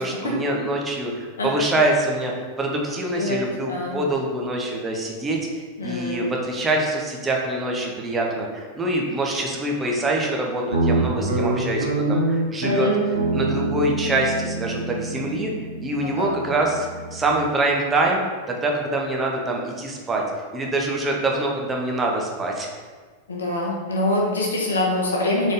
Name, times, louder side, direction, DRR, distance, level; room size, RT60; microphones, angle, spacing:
voice 1, 0.0-12.9 13.3-15.5 15.8-20.2 20.5-22.7, right 2 dB, 15° right, 0 dB, 0.8 m, -25 dB
voice 2, 3.6-4.0 5.8-6.2 12.6-12.9 16.0-16.3 23.3-25.5, left 1 dB, 70° left, -2 dB, 0.9 m, -25 dB
Guitar, 10.7-17.4, right 2 dB, 70° right, 0.7 m, -25 dB
3.8 x 3.7 x 3.5 m, 1.5 s
figure-of-eight pair, 90°, 0 cm